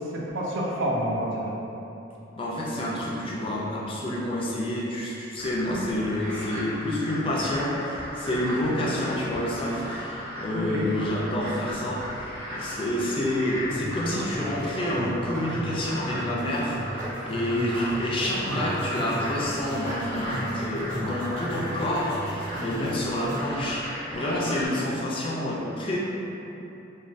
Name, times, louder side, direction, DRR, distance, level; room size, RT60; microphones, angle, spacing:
voice 1, 0.1-1.5 5.7-5.8 10.5-10.9 17.5-17.7 22.6-22.7, equal, 65° right, -3 dB, 0.5 m, -29 dB
voice 2, 2.3-26.0, left 1 dB, 25° left, -5 dB, 0.3 m, -28 dB
sound 1, 5.4-24.7, equal, 85° right, 1.0 m, -37 dB
sound 2, 13.7-23.6, right 1 dB, 45° right, 0.9 m, -36 dB
3.2 x 2.2 x 2.5 m, 3.0 s
head